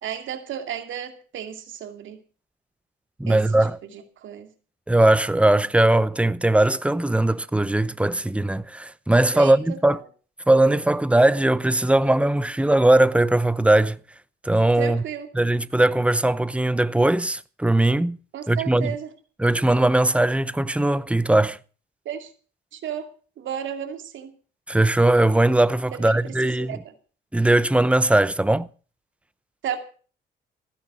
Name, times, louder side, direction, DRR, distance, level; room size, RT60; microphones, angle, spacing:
voice 1, 0.0-2.2 3.3-3.4 3.8-4.5 9.3-9.8 14.8-15.3 18.3-19.1 22.0-22.3 22.7-24.3 25.9-26.2 26.4-26.9 29.6-29.8, right 9 dB, 75° right, 2.6 m, -33 dB
voice 2, 3.2-3.8 4.9-10.0 10.5-14.0 14.4-15.0 15.3-18.2 18.5-18.9 19.4-21.6 24.7-26.8 27.3-28.7, right 1 dB, 5° right, 0.8 m, -19 dB
15.5 x 10.5 x 6.2 m
cardioid pair, 90°, 20 cm